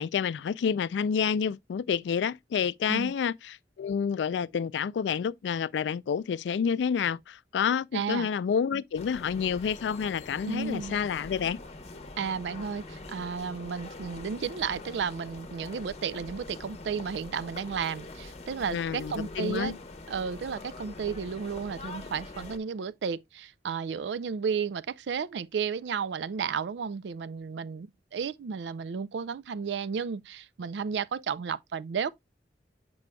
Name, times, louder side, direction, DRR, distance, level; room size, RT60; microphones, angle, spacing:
voice 1, 0.0-11.6 18.7-19.7, left 7 dB, 85° left, 0.3 m, -29 dB
voice 2, 7.9-8.3 10.5-11.0 12.2-19.8 20.1-32.1, right 6 dB, 80° right, 0.4 m, -33 dB
sound 1, 9.0-22.6, left 2 dB, 35° left, 0.8 m, -44 dB
7.5 x 6.0 x 2.2 m
head